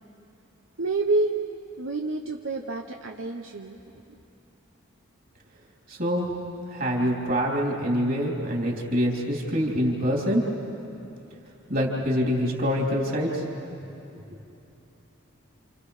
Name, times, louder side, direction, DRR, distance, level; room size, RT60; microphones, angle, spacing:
voice 1, 0.8-1.3 1.8-4.2, right 2 dB, 70° right, 2 dB, 1.0 m, -28 dB
voice 2, 5.9-6.4 6.7-10.4 11.7-13.4 14.1-14.2, equal, 45° right, -2 dB, 3.6 m, -25 dB
29.5 x 28.0 x 5.0 m, 2.9 s
head